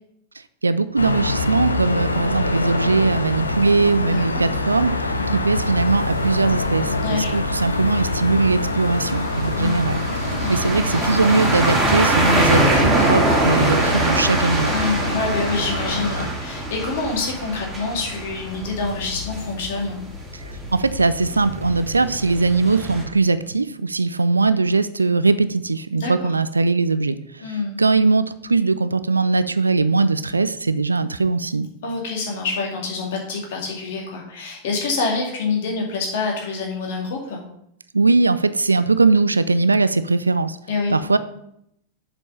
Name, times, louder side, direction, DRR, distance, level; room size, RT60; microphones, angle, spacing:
voice 1, 0.6-10.0 10.5-14.7 20.3-27.2 27.5-31.7 37.9-40.6 40.9-41.2, right 3 dB, 80° right, 14 dB, 0.4 m, -20 dB
sound 1, 1.0-16.3, left 2 dB, 80° left, 0.6 m, -25 dB
voice 2, 4.1-4.4 5.1-5.4 7.0-7.5 9.6-9.9 10.4-10.7 14.7-20.0 26.0-26.3 27.4-27.8 31.8-37.4 40.7-41.0, left 4 dB, 55° left, 0 dB, 2.2 m, -26 dB
sound 2, 5.9-23.0, right 1 dB, 10° right, 2.6 m, -24 dB
7.3 x 5.2 x 5.4 m, 0.75 s
figure-of-eight pair, 90°, 0 cm